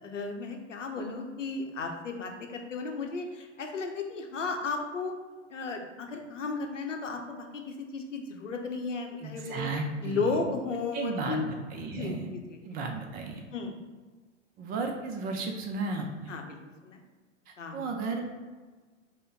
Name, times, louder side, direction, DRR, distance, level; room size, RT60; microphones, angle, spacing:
voice 1, 0.0-5.1 5.5-9.7 10.0-11.5 11.8-12.6 13.5-13.8 16.3-16.6 16.8-17.0 17.6-17.9, left 4 dB, 85° left, 3 dB, 0.8 m, -34 dB
voice 2, 9.2-10.2 10.9-12.3 12.6-13.4 14.6-16.3 17.7-18.2, right 3 dB, 25° right, 3 dB, 0.5 m, -34 dB
5.2 x 2.1 x 3.6 m, 1.3 s
figure-of-eight pair, 100°, 37 cm